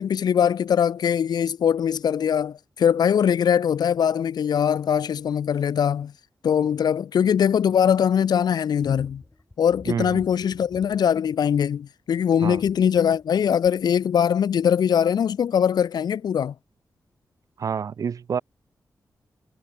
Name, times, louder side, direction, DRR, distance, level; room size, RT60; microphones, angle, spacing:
voice 1, 0.0-6.1 6.4-9.2 9.6-16.5, left 8 dB, 90° left, 0.8 m, -21 dB
sound 1, 8.8-11.8 12.3-14.0 14.5-14.6, left 2 dB, 20° left, 7.4 m, -49 dB
voice 2, 9.9-10.2 12.4-12.6 17.6-18.4, right 7 dB, 55° right, 0.4 m, -28 dB
wide cardioid pair, 105°, 7 cm